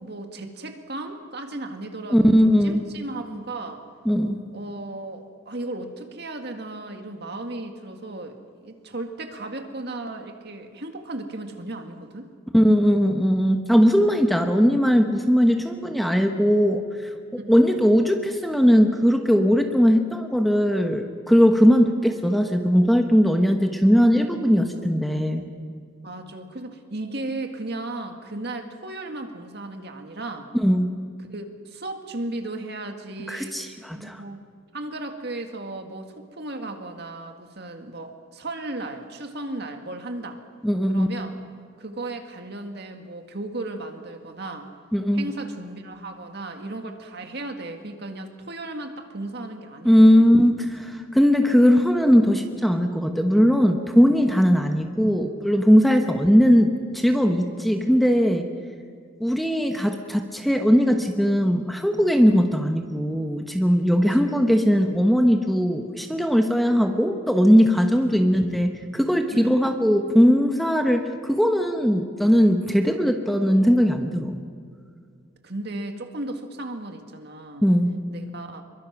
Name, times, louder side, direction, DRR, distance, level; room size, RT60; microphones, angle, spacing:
voice 1, 0.0-3.8 4.5-8.3 8.6-12.3 17.4-17.7 26.0-30.5 31.3-33.6 33.9-34.4 34.7-40.4 40.9-41.4 41.8-44.7 45.1-50.3 54.6-54.8 69.3-69.7 75.4-77.7 78.1-78.6, right 2 dB, 50° right, 5 dB, 2.0 m, -35 dB
voice 2, 2.1-2.8 4.0-4.4 12.5-16.8 17.5-25.5 30.6-30.9 33.3-34.2 40.6-41.1 44.9-45.3 49.8-58.5 59.2-74.4 77.6-78.0, equal, ahead, 4 dB, 1.1 m, -19 dB
26.5 x 23.0 x 6.1 m, 2.1 s
head